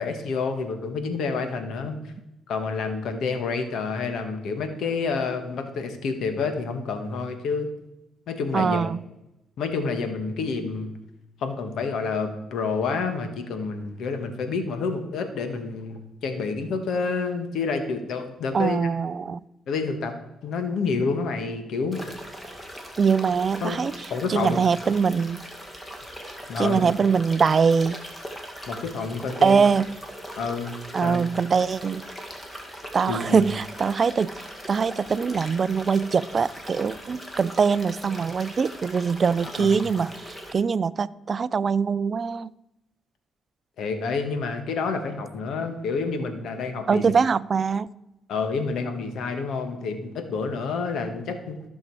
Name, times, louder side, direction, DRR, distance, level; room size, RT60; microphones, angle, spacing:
voice 1, 0.0-2.0 2.5-7.7 8.3-8.8 9.6-10.9 11.4-18.8 19.7-20.1 20.4-22.0 23.6-23.8 24.1-24.6 26.5-26.9 28.7-29.6 30.4-31.2 33.1-33.4 39.4-39.8 43.8-47.0 48.3-51.6, left 4 dB, 75° left, 7 dB, 1.4 m, -28 dB
voice 2, 8.5-9.0 18.5-19.4 23.0-23.9 24.3-25.4 26.6-28.0 29.4-29.9 30.9-32.1 32.9-34.3 34.7-42.5 46.9-47.9, right 5 dB, 40° right, 18 dB, 0.4 m, -23 dB
sound 1, 21.9-40.5, equal, 15° left, 2.0 m, -40 dB
14.5 x 6.4 x 4.7 m, 0.93 s
cardioid pair, 90°, 0 cm